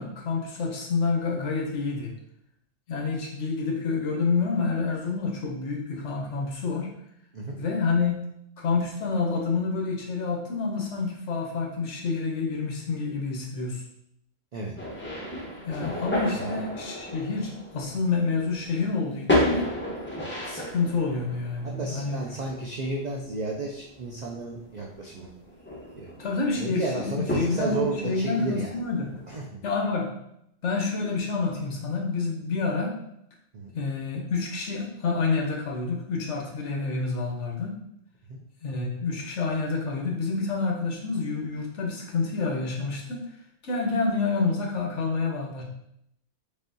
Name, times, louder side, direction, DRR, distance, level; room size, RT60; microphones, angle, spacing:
voice 1, 0.0-2.1 2.9-6.9 7.5-8.2 8.6-13.8 15.6-19.7 20.5-22.2 26.2-29.1 29.6-30.1 30.6-33.0 33.7-37.8 38.6-43.2 43.6-45.6, left 4 dB, 65° left, 0 dB, 1.1 m, -28 dB
sound 1, 14.8-29.3, left 1 dB, 15° left, 0.5 m, -33 dB
voice 2, 21.6-25.3 26.0-26.1 26.6-28.7 29.3-29.6 33.5-33.7 38.3-38.4, right 3 dB, 60° right, -2 dB, 0.4 m, -33 dB
4.1 x 3.4 x 2.6 m, 0.76 s
omnidirectional pair, 1.3 m